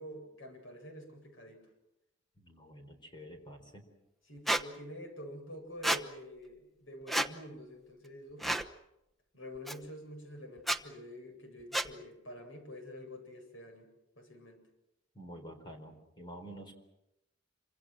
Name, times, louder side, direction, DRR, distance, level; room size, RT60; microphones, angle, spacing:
voice 1, 0.0-1.7 4.3-8.5 9.3-13.9 14.2-14.6, equal, 85° left, 5 dB, 7.9 m, -47 dB
voice 2, 2.4-3.9 15.1-16.7, equal, 25° left, 4 dB, 4.3 m, -49 dB
Squeak, 4.5-4.6 5.8-6.0 7.1-7.3 8.4-8.7 9.7-9.8 10.6-10.8 11.7-11.9, right 1 dB, ahead, 1.0 m, -30 dB
27.5 x 25.5 x 6.3 m, 0.87 s
head